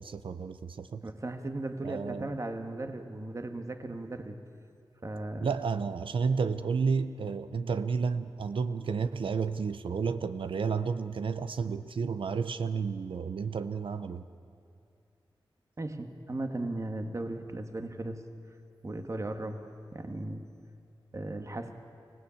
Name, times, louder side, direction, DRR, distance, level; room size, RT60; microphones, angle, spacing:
voice 1, 0.0-1.0 1.8-2.3 5.4-14.2, right 5 dB, 90° right, 11 dB, 0.7 m, -31 dB
voice 2, 1.0-4.4 5.0-5.5 15.8-18.2 18.8-19.6 19.9-20.5 21.1-21.8, right 2 dB, 35° right, 6 dB, 1.6 m, -37 dB
24.0 x 17.5 x 8.6 m, 2.5 s
wide cardioid pair, 70°, 9 cm